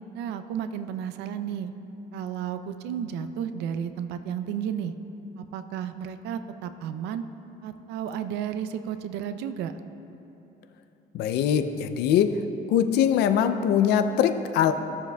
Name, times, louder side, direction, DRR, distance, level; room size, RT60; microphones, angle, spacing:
voice 1, 0.1-1.7 2.1-4.9 5.4-7.3 7.6-9.7, right 8 dB, 90° right, 10 dB, 0.5 m, -32 dB
voice 2, 11.1-12.3 12.7-14.7, left 9 dB, 80° left, 9 dB, 0.5 m, -22 dB
16.0 x 7.0 x 2.3 m, 3.0 s
cardioid pair, 110°, 17 cm